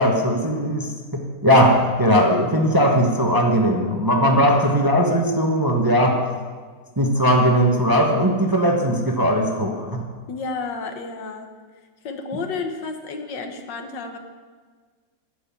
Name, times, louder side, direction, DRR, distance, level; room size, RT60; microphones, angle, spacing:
voice 1, 0.0-6.3 7.0-10.0, equal, 15° right, 1 dB, 1.1 m, -19 dB
voice 2, 10.3-11.5 12.0-14.2, left 4 dB, 75° left, 5 dB, 1.8 m, -31 dB
11.0 x 7.7 x 8.8 m, 1.5 s
omnidirectional pair, 2.0 m